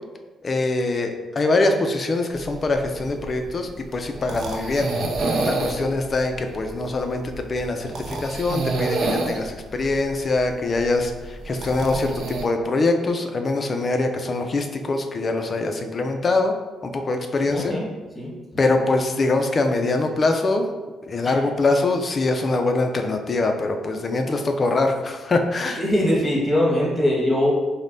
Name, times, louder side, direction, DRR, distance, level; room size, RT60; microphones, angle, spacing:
voice 1, 0.4-4.9 5.4-7.2 7.5-16.5 16.8-17.8 18.6-20.7 21.1-25.8, left 2 dB, 35° left, 5 dB, 0.4 m, -23 dB
sound 1, 2.4-12.5, right 2 dB, 60° right, 0.5 m, -29 dB
voice 2, 17.5-17.9 18.1-18.3 21.2-21.3 25.8-27.5, left 1 dB, 10° left, -4 dB, 1.3 m, -21 dB
5.1 x 2.1 x 2.6 m, 1.3 s
cardioid pair, 90°, 0 cm